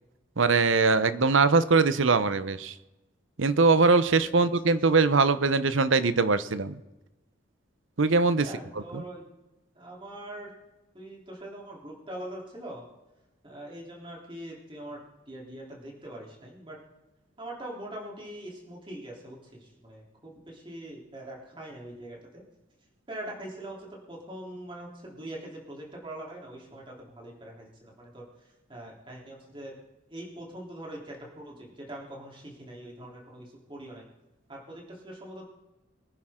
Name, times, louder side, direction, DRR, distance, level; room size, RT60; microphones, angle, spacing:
voice 1, 0.4-2.7 3.4-6.8 8.0-8.5 8.9-9.0, right 4 dB, 80° right, 13 dB, 0.9 m, -22 dB
voice 2, 8.4-9.3 9.7-10.5 10.9-12.8 13.4-16.8 17.4-22.4 23.1-28.2 28.7-29.7 30.1-34.1 34.5-35.5, right 1 dB, 25° right, -2 dB, 3.5 m, -42 dB
24.0 x 10.5 x 3.8 m, 1.0 s
head